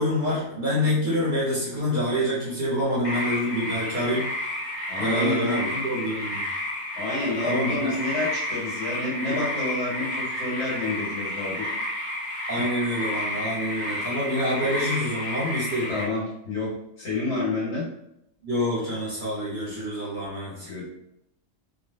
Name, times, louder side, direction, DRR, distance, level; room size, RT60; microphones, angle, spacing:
voice 1, 0.0-4.2 5.0-6.5 7.4-7.9 12.5-15.9 18.4-20.7, equal, 45° right, -6 dB, 1.0 m, -26 dB
sound 1, 3.0-16.0, left 1 dB, 40° left, 0.9 m, -31 dB
voice 2, 4.9-5.7 6.9-11.7 12.6-12.7 15.9-17.9 20.6-20.8, left 2 dB, 60° left, -7 dB, 1.7 m, -29 dB
3.2 x 2.6 x 2.6 m, 0.79 s
omnidirectional pair, 1.3 m